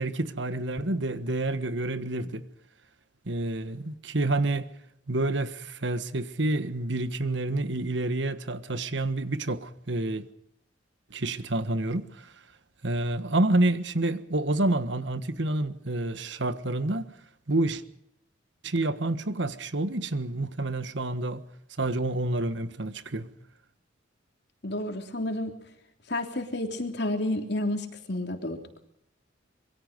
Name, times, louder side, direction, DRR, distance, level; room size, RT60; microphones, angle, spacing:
voice 1, 0.0-2.4 3.3-4.7 5.1-10.3 11.1-12.1 12.8-17.1 17.5-17.8 18.6-21.4 21.8-23.3, right 2 dB, 65° right, 1.5 m, -28 dB
voice 2, 24.6-25.6 26.1-28.6, left 1 dB, 60° left, 3.3 m, -30 dB
26.0 x 23.0 x 5.3 m
head